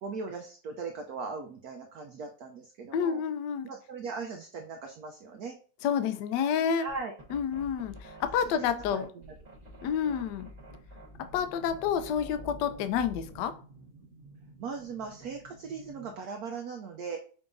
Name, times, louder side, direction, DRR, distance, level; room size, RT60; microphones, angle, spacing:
voice 1, 0.0-3.2 3.6-5.6 6.8-7.1 8.3-9.3 14.6-17.2, right 4 dB, 85° right, 3 dB, 0.8 m, -39 dB
voice 2, 2.9-3.7 5.8-6.9 7.3-9.1 9.8-10.5 11.3-13.6, left 8 dB, 75° left, 9 dB, 1.0 m, -29 dB
sound 1, 6.9-13.5, equal, 30° right, 0.7 m, -48 dB
sound 2, 11.1-16.2, right 3 dB, 50° right, 1.3 m, -53 dB
5.7 x 3.6 x 2.6 m, 0.42 s
omnidirectional pair, 2.3 m